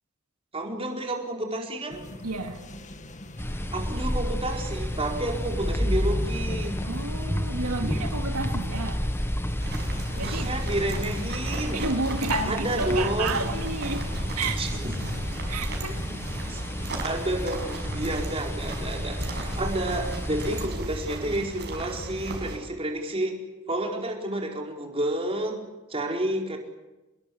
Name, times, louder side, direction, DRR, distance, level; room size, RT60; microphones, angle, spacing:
voice 1, 0.5-2.0 3.7-6.9 10.1-11.9 12.5-13.5 14.6-15.1 16.1-16.2 16.5-16.6 17.0-23.4 23.7-25.6 25.9-26.6, right 1 dB, 25° right, 1 dB, 4.6 m, -30 dB
sound 1, 1.9-17.1, left 1 dB, 35° left, 1.8 m, -42 dB
voice 2, 2.2-2.6 6.8-9.1 10.2-10.5 11.7-14.9 15.5-16.0, right 3 dB, 85° right, 4 dB, 2.4 m, -31 dB
sound 2, 3.4-20.7, equal, 10° left, 1.6 m, -31 dB
sound 3, 9.6-22.6, right 2 dB, 50° right, 6.0 m, -36 dB
27.0 x 21.5 x 8.6 m, 1.1 s
head